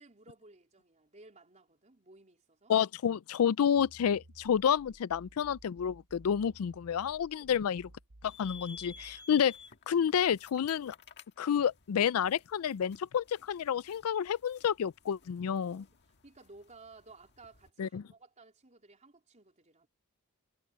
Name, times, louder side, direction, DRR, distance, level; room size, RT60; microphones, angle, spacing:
voice 1, 0.0-2.7 7.4-7.5 15.6-15.9 16.2-19.9, right 3 dB, 35° right, 4.0 m, -57 dB
voice 2, 2.7-7.8 8.4-9.5 9.9-10.9 11.4-15.9 17.8-18.0, left 8 dB, 75° left, 0.4 m, -29 dB
sound 1, 3.8-9.2, right 1 dB, 85° right, 1.3 m, -56 dB
sound 2, 8.2-17.7, left 5 dB, 50° left, 1.7 m, -54 dB
head